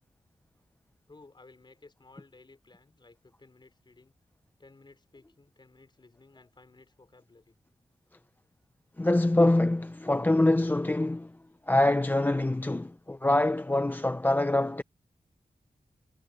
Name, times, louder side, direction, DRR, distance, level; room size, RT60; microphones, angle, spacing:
voice 1, 1.1-4.1 4.6-7.6, left 3 dB, 30° left, 4.1 m, -56 dB
voice 2, 9.0-11.3 11.7-14.8, left 1 dB, 15° left, 0.5 m, -25 dB
wide cardioid pair, 135°, 14 cm